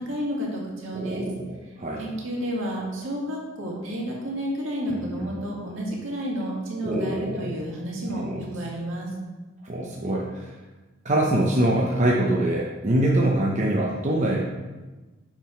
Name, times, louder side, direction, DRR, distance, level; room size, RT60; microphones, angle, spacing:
voice 1, 0.0-1.2 2.0-9.1, equal, 70° right, -3 dB, 2.1 m, -31 dB
voice 2, 0.9-1.4 1.8-2.0 4.9-5.3 6.8-7.5 8.1-8.4 9.6-10.5 11.0-14.4, right 1 dB, 35° right, -3 dB, 0.7 m, -24 dB
7.3 x 5.5 x 4.6 m, 1.2 s
head